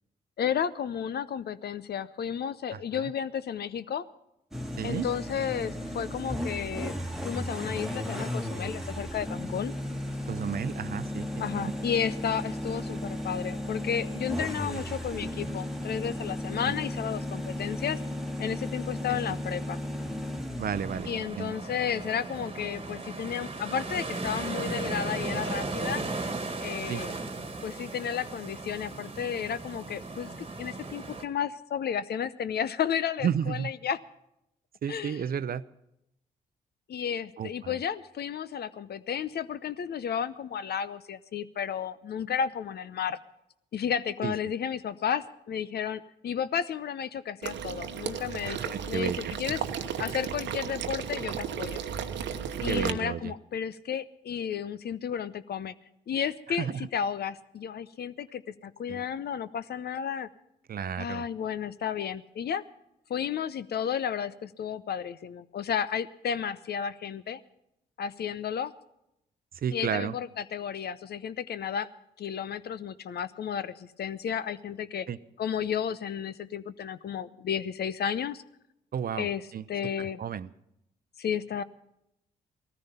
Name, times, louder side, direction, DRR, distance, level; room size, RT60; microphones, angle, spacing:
voice 1, 0.4-4.1 4.8-6.9 7.2-9.7 11.4-18.0 18.4-19.8 21.1-26.0 26.6-27.1 27.6-30.3 30.6-34.0 34.9-35.3 36.9-43.2 43.7-49.6 50.0-51.8 52.6-55.7 56.1-60.3 61.0-62.6 63.1-67.4 68.0-68.7 69.7-71.9 72.2-75.1 75.4-78.4 79.2-80.2 81.2-81.6, left 8 dB, 55° left, 15 dB, 0.7 m, -32 dB
voice 2, 2.7-3.1 4.8-5.1 10.3-11.3 11.5-11.7 14.7-14.8 16.7-16.8 19.1-19.2 20.6-21.5 26.9-27.0 33.2-33.7 34.8-35.6 37.4-37.8 44.2-44.3 48.4-49.3 52.7-53.3 56.6-56.8 58.9-59.0 60.7-61.3 69.6-70.1 75.1-75.2 78.9-79.3 79.5-79.6 80.0-80.5, right 8 dB, 50° right, 16 dB, 0.6 m, -32 dB
sound 1, 4.5-21.3, left 1 dB, ahead, 1.8 m, -35 dB
sound 2, 20.7-31.3, right 3 dB, 30° right, 1.7 m, -36 dB
Water / Liquid, 47.4-52.9, right 8 dB, 70° right, 1.0 m, -34 dB
17.0 x 14.0 x 5.6 m, 0.82 s
hypercardioid pair, 45°, 19 cm